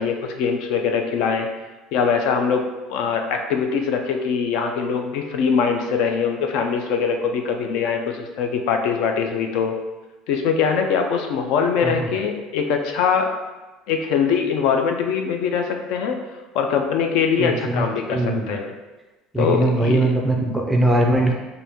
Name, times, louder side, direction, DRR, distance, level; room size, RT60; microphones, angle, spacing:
voice 1, 0.0-1.5 1.9-9.8 10.3-13.3 13.9-16.2 16.5-18.7 19.4-20.1, left 6 dB, 60° left, 4 dB, 0.4 m, -22 dB
voice 2, 17.4-18.5 19.3-21.3, right 1 dB, 5° right, 0 dB, 0.4 m, -21 dB
4.3 x 2.6 x 3.5 m, 1.1 s
cardioid pair, 170°, 0 cm